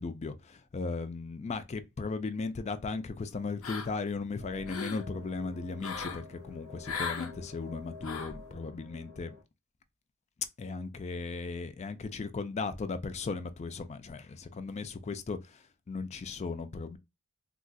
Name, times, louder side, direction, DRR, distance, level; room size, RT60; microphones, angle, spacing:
voice 1, 0.0-9.3 10.6-17.0, left 4 dB, 30° left, 0.4 m, -37 dB
sound 1, 3.6-4.1 4.5-5.0 5.8-6.2 6.8-7.3 8.0-8.4, left 5 dB, 75° left, 0.8 m, -37 dB
sound 2, 4.4-9.4, left 4 dB, 40° right, 1.8 m, -50 dB
3.8 x 2.4 x 2.3 m
head